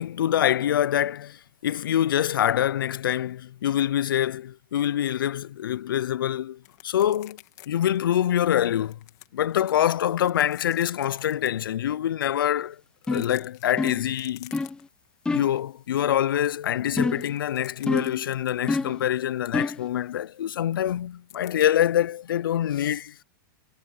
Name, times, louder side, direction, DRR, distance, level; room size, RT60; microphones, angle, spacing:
voice 1, 0.0-7.4 7.7-9.0 9.3-12.8 13.1-14.5 15.3-23.2, left 11 dB, 90° left, 0.5 m, -25 dB
sound 1, 6.6-7.7 8.0-8.1 8.6-9.8 10.2-11.5 12.9-15.1 15.4-15.6 16.0-18.7 21.3-21.7, left 22 dB, 50° left, 2.8 m, -49 dB
sound 2, 13.1-13.4 13.8-14.1 14.5-14.8 15.3-15.6 17.0-17.4 17.9-18.2 18.7-19.0 19.5-19.9, left 3 dB, 10° left, 1.0 m, -27 dB
hypercardioid pair, 140°, 11 cm